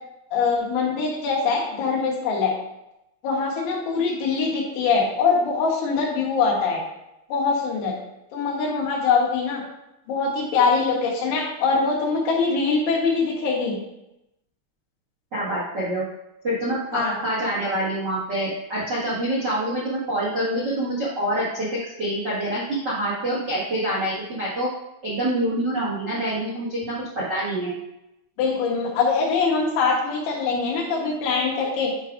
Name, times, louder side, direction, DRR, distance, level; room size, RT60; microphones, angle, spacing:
voice 1, 0.3-2.5 3.2-6.8 7.3-7.9 8.3-9.6 10.1-13.8 16.9-17.1 28.4-31.9, left 4 dB, 80° left, -3 dB, 3.8 m, -23 dB
voice 2, 15.3-16.0 16.4-24.7 25.0-27.7, right 1 dB, 85° right, -8 dB, 0.9 m, -26 dB
9.9 x 4.8 x 2.6 m, 0.88 s
omnidirectional pair, 5.5 m